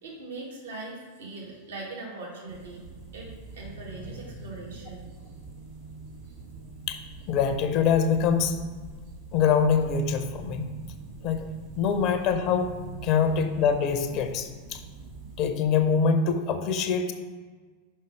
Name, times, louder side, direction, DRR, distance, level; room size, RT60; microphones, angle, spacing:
voice 1, 0.0-2.8 3.1-5.1 6.2-6.3, right 2 dB, 65° right, -4 dB, 2.0 m, -41 dB
sound 1, 2.5-15.5, right 4 dB, 45° right, 2.0 m, -44 dB
voice 2, 7.3-8.6 9.3-10.7 11.2-11.5 11.8-12.7 13.0-14.8 15.4-17.1, left 6 dB, 40° left, 7 dB, 0.7 m, -24 dB
5.4 x 5.3 x 5.0 m, 1.4 s
figure-of-eight pair, 90°, 0 cm